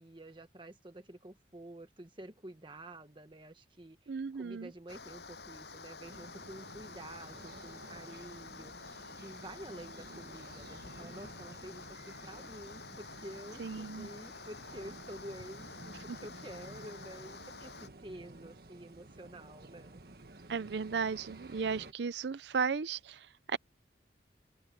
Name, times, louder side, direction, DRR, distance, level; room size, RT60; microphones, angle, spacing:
voice 1, 0.0-20.0, right 1 dB, 30° right, 1.4 m, -49 dB
voice 2, 4.1-4.7 13.6-14.1 20.5-23.6, right 5 dB, 75° right, 0.5 m, -35 dB
Water, 4.9-17.9, left 4 dB, 70° left, 7.5 m, -49 dB
sound 1, 6.1-21.9, right 2 dB, 60° right, 1.5 m, -53 dB
open air
head